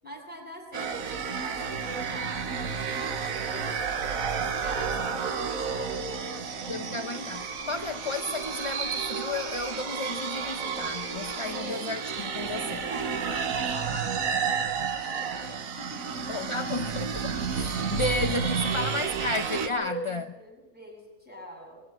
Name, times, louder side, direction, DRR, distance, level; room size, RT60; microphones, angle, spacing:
voice 1, 0.0-2.5 3.3-6.7 7.0-7.1 7.5-7.7 11.5-11.8 12.5-16.4 18.6-18.9 19.7-21.8, right 1 dB, 5° right, -2 dB, 7.6 m, -43 dB
sound 1, 0.7-19.7, right 6 dB, 75° right, 1.7 m, -31 dB
sound 2, 5.9-15.6, equal, 40° right, 3.8 m, -56 dB
voice 2, 6.7-12.8 16.3-20.2, left 2 dB, 30° left, 7 dB, 0.6 m, -33 dB
22.0 x 16.5 x 9.1 m, 1.1 s
omnidirectional pair, 1.4 m